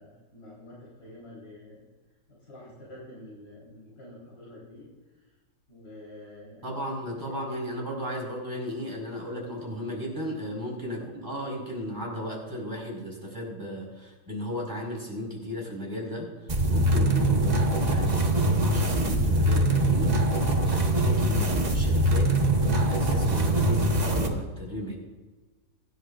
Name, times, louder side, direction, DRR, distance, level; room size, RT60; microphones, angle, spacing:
voice 1, 0.0-1.8 2.3-4.9 5.7-6.8 7.2-7.3 10.9-11.1, left 1 dB, 75° left, -7 dB, 4.6 m, -47 dB
voice 2, 6.6-22.3 22.7-24.9, equal, 15° right, -3 dB, 4.9 m, -35 dB
sound 1, 16.5-24.3, right 1 dB, 30° right, 1.2 m, -23 dB
23.0 x 11.0 x 2.5 m, 1.3 s
omnidirectional pair, 1.6 m